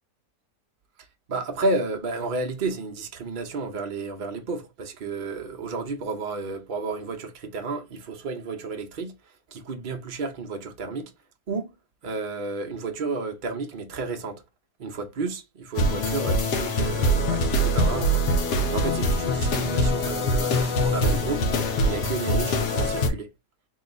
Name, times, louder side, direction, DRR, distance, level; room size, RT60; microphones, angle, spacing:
voice 1, 1.3-11.1 11.5-11.7 12.0-14.4 14.8-21.5 21.8-23.3, right 3 dB, 75° right, 0.4 m, -32 dB
sound 1, 15.8-23.1, left 1 dB, 80° left, 1.4 m, -23 dB
3.7 x 2.3 x 3.7 m
omnidirectional pair, 1.8 m